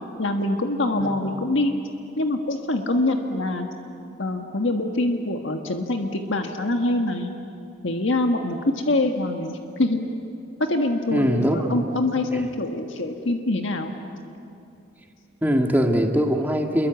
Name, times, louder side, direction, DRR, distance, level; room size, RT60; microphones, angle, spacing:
voice 1, 0.2-1.7 2.2-3.7 4.2-7.3 7.8-10.0 10.7-13.9, left 2 dB, 75° left, 4 dB, 1.5 m, -24 dB
voice 2, 11.1-11.7 12.3-12.4 15.4-16.9, equal, 10° right, 2 dB, 1.9 m, -22 dB
28.0 x 23.0 x 8.2 m, 2.6 s
head